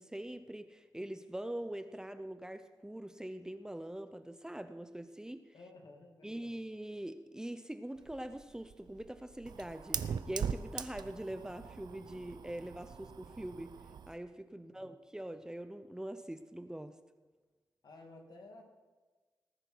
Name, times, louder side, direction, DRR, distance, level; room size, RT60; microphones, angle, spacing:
voice 1, 0.0-5.5 6.2-13.8 14.1-17.0, right 1 dB, 10° right, 10 dB, 0.7 m, -43 dB
voice 2, 5.5-6.6 14.6-14.9 17.8-18.6, left 2 dB, 70° left, 2 dB, 2.4 m, -54 dB
Fire, 8.0-14.2, right 7 dB, 80° right, 0.6 m, -41 dB
19.0 x 10.0 x 4.6 m, 1.3 s
wide cardioid pair, 95°, 7 cm